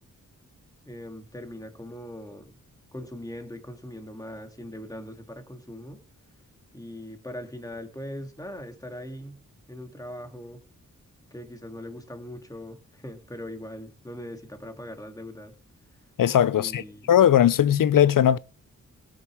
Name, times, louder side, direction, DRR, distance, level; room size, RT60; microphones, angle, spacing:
voice 1, 0.9-2.6 2.9-6.0 6.7-9.4 9.7-10.6 11.3-15.6 16.5-17.1, left 1 dB, 10° left, 2.5 m, -40 dB
voice 2, 16.2-16.8 17.1-18.4, left 10 dB, 75° left, 0.7 m, -19 dB
17.0 x 9.0 x 4.8 m
cardioid pair, 75°, 33 cm